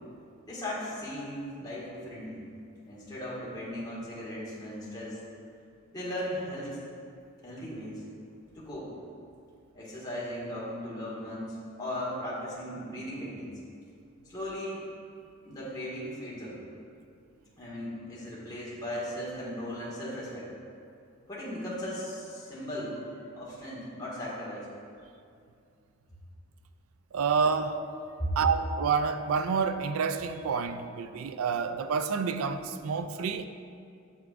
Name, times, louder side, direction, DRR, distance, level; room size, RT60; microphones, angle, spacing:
voice 1, 0.4-2.4 2.8-5.2 5.9-6.8 7.4-8.0 8.5-8.9 9.7-13.5 14.3-14.9 15.4-16.6 17.6-20.5 21.3-23.1 23.4-24.7 28.2-28.3, equal, 20° left, 1.8 m, -37 dB
voice 2, 27.1-27.8 28.4-33.4, right 5 dB, 80° right, 0.4 m, -28 dB
7.9 x 7.6 x 2.5 m
head